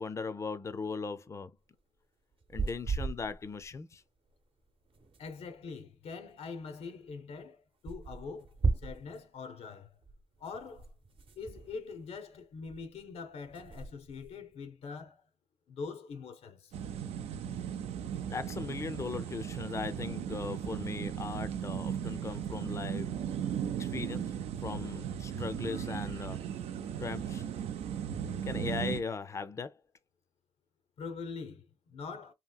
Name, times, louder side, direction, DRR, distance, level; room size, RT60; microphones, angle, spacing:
voice 1, 0.0-1.6 2.5-4.0 18.3-23.2 23.8-24.3 24.6-26.5 27.0-27.5 28.4-29.8, left 4 dB, 30° left, 0.4 m, -38 dB
sound 1, 2.3-3.7 4.0-4.1 4.3-4.4 4.6-5.7 6.6-6.7 7.0-7.1 7.9-9.3 10.0-12.3 12.6-13.0 13.4-14.5, right 4 dB, 60° right, 0.8 m, -37 dB
voice 2, 5.2-8.5 8.8-9.9 10.4-10.9 11.4-15.2 15.7-16.7 31.0-32.3, left 5 dB, 80° left, 0.5 m, -43 dB
sound 2, 16.7-29.0, right 9 dB, 85° right, 0.4 m, -37 dB
2.8 x 2.8 x 2.2 m
cardioid pair, 65°, 10 cm